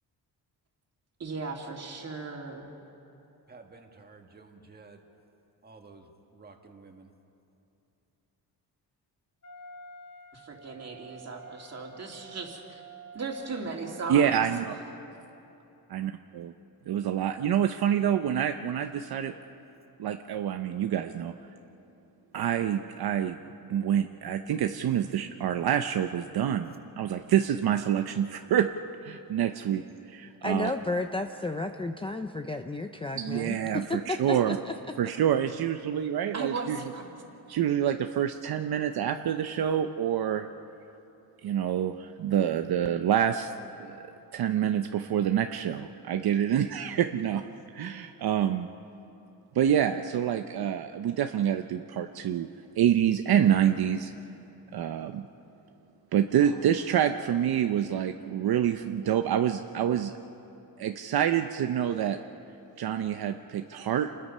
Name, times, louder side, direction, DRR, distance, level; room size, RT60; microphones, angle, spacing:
voice 1, 1.2-2.7 10.3-12.8 13.1-14.4 36.3-37.1, right 4 dB, 40° right, 0 dB, 2.8 m, -37 dB
voice 2, 3.5-5.0 5.6-7.1, right 3 dB, 25° right, 3 dB, 1.7 m, -52 dB
Wind instrument woodwind instrument, 9.4-14.7, right 3 dB, 40° left, 1.8 m, -49 dB
voice 3, 14.1-14.7 15.9-16.5 16.9-19.3 20.0-21.3 22.3-23.4 23.7-28.7 29.0-29.8 30.1-30.7 33.2-34.6 35.0-36.8 37.5-40.5 41.4-43.5 43.8-44.0 44.3-47.4 47.7-48.7 49.5-52.5 52.8-54.1 54.7-55.3 56.1-60.1 60.8-62.2 62.8-64.1, right 9 dB, 65° right, 7 dB, 0.7 m, -27 dB
voice 4, 30.4-34.7, left 2 dB, 15° left, 6 dB, 0.5 m, -32 dB
28.5 x 20.5 x 5.5 m, 2.9 s
wide cardioid pair, 155°, 41 cm